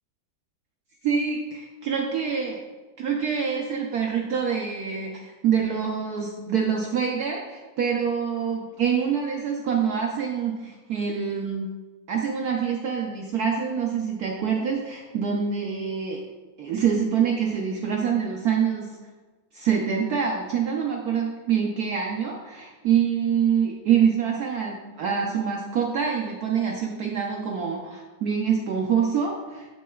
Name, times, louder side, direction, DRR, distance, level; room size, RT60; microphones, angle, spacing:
voice 1, 1.0-2.6 3.0-11.7 12.1-16.2 16.6-19.0 19.5-29.7, right 7 dB, 70° right, 0 dB, 0.9 m, -25 dB
8.7 x 6.1 x 2.3 m, 1.3 s
omnidirectional pair, 2.2 m